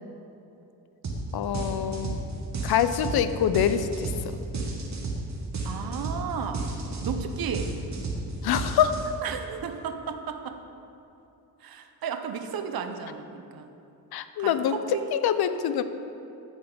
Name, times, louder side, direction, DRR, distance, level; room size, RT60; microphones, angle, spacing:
sound 1, 1.0-1.2 1.5-9.3, right 3 dB, 45° right, 1.4 m, -32 dB
voice 1, 1.3-2.2 2.6-4.1 8.4-9.1 14.1-14.7 15.1-15.8, left 9 dB, 70° left, 11 dB, 0.6 m, -25 dB
voice 2, 5.6-6.6 7.0-7.7 9.2-10.6 11.6-13.7 14.4-15.1, right 7 dB, 65° right, 7 dB, 0.8 m, -34 dB
14.5 x 5.1 x 3.8 m, 2.9 s
cardioid pair, 75°, 39 cm